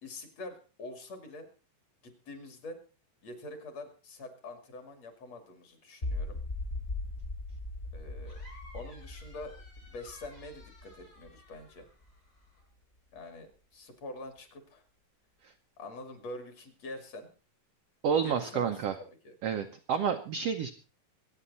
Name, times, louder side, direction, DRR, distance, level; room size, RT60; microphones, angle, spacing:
voice 1, 0.0-1.5 2.0-2.8 3.2-6.4 7.9-8.4 8.7-9.5 9.8-11.9 13.1-14.8 15.8-17.3 18.2-18.7 19.2-19.3, left 2 dB, 50° left, 7 dB, 3.4 m, -45 dB
sound 1, 6.0-12.1, left 2 dB, 25° left, 1.7 m, -39 dB
sound 2, 8.2-12.6, left 2 dB, 90° left, 9.1 m, -57 dB
voice 2, 18.0-19.0 19.4-20.7, right 7 dB, 70° right, 6 dB, 1.5 m, -29 dB
24.5 x 9.5 x 4.1 m, 0.35 s
omnidirectional pair, 3.9 m